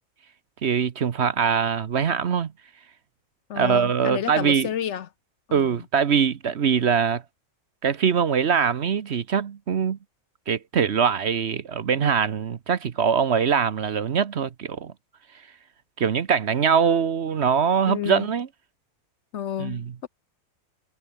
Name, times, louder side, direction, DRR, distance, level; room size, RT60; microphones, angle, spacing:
voice 1, 0.6-2.5 3.5-4.7 5.5-7.2 7.8-10.0 10.5-14.9 16.0-18.5 19.6-19.9, right 7 dB, 55° right, 1.1 m, -22 dB
voice 2, 3.5-5.1 5.5-5.8 17.9-18.3 19.3-20.1, left 9 dB, 60° left, 0.9 m, -30 dB
omnidirectional pair, 1.5 m